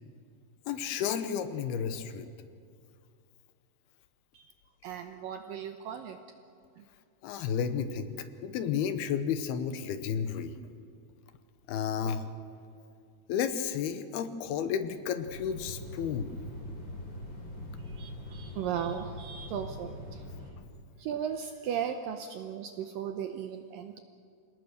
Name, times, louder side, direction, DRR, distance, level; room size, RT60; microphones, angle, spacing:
voice 1, 0.7-2.3 7.2-10.6 11.7-12.3 13.3-16.3, left 7 dB, 75° left, 10 dB, 2.7 m, -32 dB
voice 2, 4.8-6.2 6.8-6.9 17.8-20.2 21.0-24.0, right 8 dB, 80° right, 6 dB, 2.1 m, -36 dB
sound 1, 15.2-20.5, left 1 dB, 30° left, 3.7 m, -42 dB
27.0 x 18.5 x 6.6 m, 2.3 s
omnidirectional pair, 4.8 m